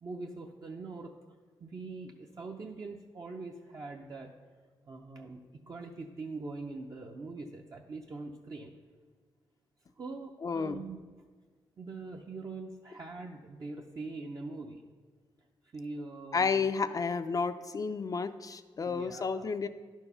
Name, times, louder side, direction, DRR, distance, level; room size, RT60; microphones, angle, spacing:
voice 1, 0.0-1.1 1.6-4.3 4.9-8.8 10.0-11.0 11.8-14.8 15.6-16.7 18.8-19.4, right 3 dB, 40° right, 0 dB, 0.6 m, -43 dB
voice 2, 10.4-10.8 16.3-19.7, left 5 dB, 40° left, 9 dB, 0.4 m, -31 dB
11.0 x 4.7 x 5.5 m, 1.5 s
cardioid pair, 85°, 9 cm